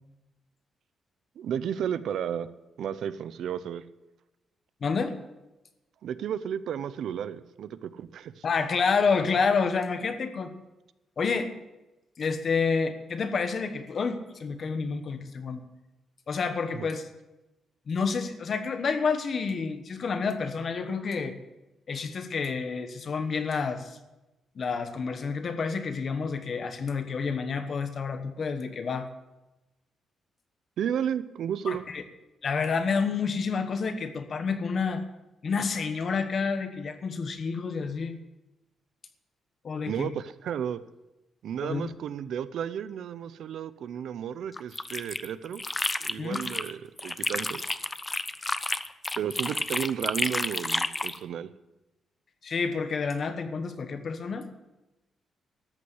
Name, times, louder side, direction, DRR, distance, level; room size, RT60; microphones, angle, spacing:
voice 1, 1.4-2.5 2.8-3.8 6.0-8.4 16.7-16.9 30.8-31.9 39.9-40.8 41.4-45.6 46.0-47.8 49.2-51.5, right 9 dB, 65° right, 15 dB, 0.6 m, -33 dB
voice 2, 4.8-5.2 8.4-10.5 11.2-11.5 12.2-15.6 16.3-17.0 17.9-21.3 21.9-24.0 24.5-29.1 31.7-32.0 32.4-35.0 35.4-38.2 39.6-40.1 41.6-41.9 46.2-46.4 52.4-54.5, left 5 dB, 40° left, 9 dB, 1.2 m, -29 dB
sound 1, 44.5-46.7 47.0-51.2, left 2 dB, 15° left, 0.5 m, -31 dB
13.5 x 8.5 x 7.9 m, 1.0 s
wide cardioid pair, 180°, 0 cm